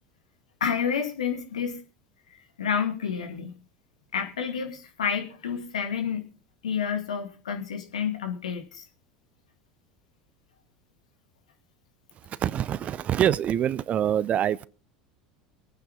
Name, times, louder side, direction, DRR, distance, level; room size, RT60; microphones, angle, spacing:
voice 1, 0.6-1.8 2.3-3.6 4.1-6.3 6.6-8.8, left 7 dB, 80° left, 2.3 m, -29 dB
voice 2, 12.4-14.7, right 10 dB, 40° right, 0.7 m, -25 dB
24.5 x 9.1 x 4.0 m
figure-of-eight pair, 75°, 4 cm